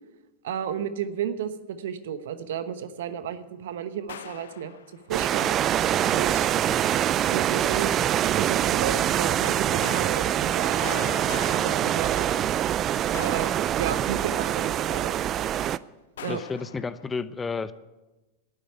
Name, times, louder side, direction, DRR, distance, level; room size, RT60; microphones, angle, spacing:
voice 1, 0.4-4.8 5.1-5.6 6.1-6.5 7.3-8.0 8.4-10.9 11.5-12.4 13.1-15.2 16.2-16.4, right 8 dB, 70° right, 11 dB, 1.0 m, -33 dB
sound 1, 4.1-5.2 9.8-12.7 13.1-14.5 16.2-17.1, left 10 dB, 75° left, 0.5 m, -42 dB
sound 2, 5.1-15.8, right 11 dB, 35° right, 0.4 m, -24 dB
voice 2, 16.3-17.7, left 4 dB, 15° left, 15 dB, 0.6 m, -31 dB
11.5 x 9.1 x 9.5 m, 1.1 s
hypercardioid pair, 105°, 0 cm